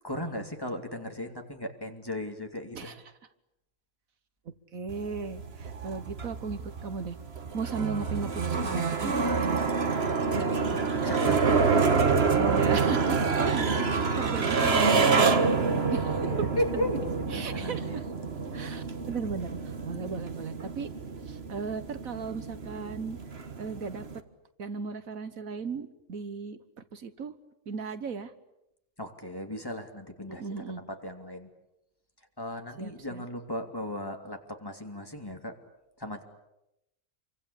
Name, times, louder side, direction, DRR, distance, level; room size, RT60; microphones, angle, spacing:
voice 1, 0.0-2.9 10.2-12.0 16.2-18.0 18.5-18.9 29.0-31.5 32.4-35.5 36.0-36.2, left 1 dB, 15° left, 3 dB, 3.1 m, -36 dB
voice 2, 4.7-7.2 7.5-9.6 12.4-16.5 16.7-16.8 17.3-18.0 18.5-19.6 19.8-20.9 21.3-23.2 23.6-24.0 24.6-26.6 26.9-27.3 27.7-28.3 30.3-30.8 32.8-33.2, right 5 dB, 75° right, 12 dB, 1.7 m, -36 dB
sound 1, 4.9-24.2, right 4 dB, 45° right, 1.8 m, -27 dB
28.0 x 24.5 x 8.6 m, 0.87 s
omnidirectional pair, 1.5 m